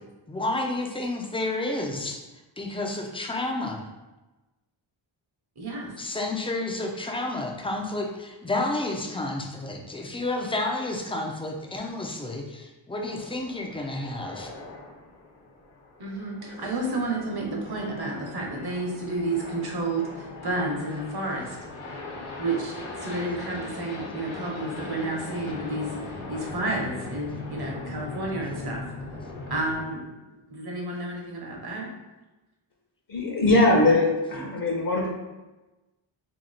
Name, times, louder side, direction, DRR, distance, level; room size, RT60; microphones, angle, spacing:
voice 1, 0.3-2.2 2.6-3.8 6.0-14.5, left 2 dB, 10° left, 2 dB, 0.5 m, -30 dB
voice 2, 5.6-5.9 16.0-21.6 22.4-28.8 29.5-30.0 30.5-31.9, right 2 dB, 50° right, -1 dB, 1.1 m, -31 dB
sound 1, 13.0-29.8, left 2 dB, 85° left, 1.1 m, -40 dB
voice 3, 33.1-35.1, left 2 dB, 45° left, -1 dB, 0.8 m, -21 dB
2.9 x 2.8 x 4.0 m, 1.1 s
cardioid pair, 85°, 49 cm